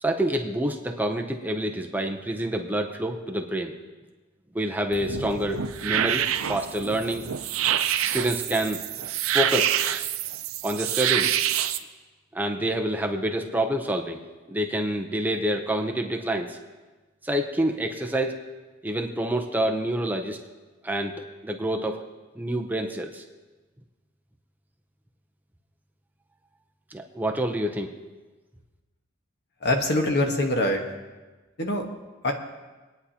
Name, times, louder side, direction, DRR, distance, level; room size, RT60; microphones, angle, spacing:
voice 1, 0.0-3.7 4.5-7.2 8.1-8.8 9.3-9.8 10.6-11.3 12.3-14.2 14.5-16.6 17.2-18.4 18.8-20.4 20.8-22.0 22.4-23.2 26.9-27.9, right 1 dB, 10° right, 3 dB, 0.6 m, -27 dB
sound 1, 4.9-11.8, right 10 dB, 80° right, 0.5 m, -27 dB
voice 2, 29.6-30.8 31.6-31.8 32.2-32.3, left 1 dB, 55° left, 3 dB, 1.3 m, -23 dB
24.0 x 9.4 x 2.9 m, 1.3 s
head